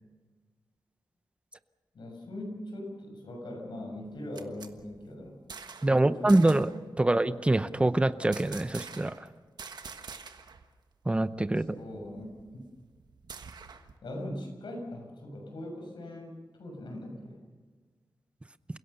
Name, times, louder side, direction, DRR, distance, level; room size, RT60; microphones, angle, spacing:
voice 1, 1.9-5.4 5.8-6.6 11.6-12.6 14.0-17.4, left 1 dB, 85° left, 2 dB, 6.6 m, -41 dB
sound 1, 4.0-6.0 6.3-6.8 8.3-9.3 9.6-10.7 10.9-11.0 11.4-14.0, right 5 dB, 65° right, 1.4 m, -46 dB
voice 2, 5.8-6.7 7.0-9.1 11.1-11.8, right 2 dB, 15° right, 13 dB, 0.7 m, -24 dB
29.0 x 17.0 x 6.8 m, 1.4 s
wide cardioid pair, 145°, 8 cm